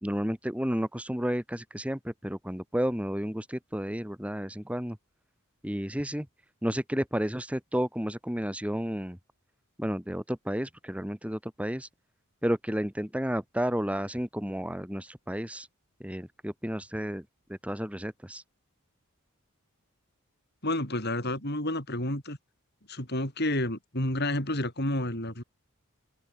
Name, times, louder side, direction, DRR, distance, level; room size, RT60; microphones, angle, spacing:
voice 1, 0.0-5.0 5.6-6.3 6.6-9.2 9.8-11.9 12.4-15.7 16.0-18.4, equal, 5° right, 1.8 m, -32 dB
voice 2, 20.6-22.4 22.9-25.4, left 1 dB, 45° left, 7.6 m, -30 dB
open air
head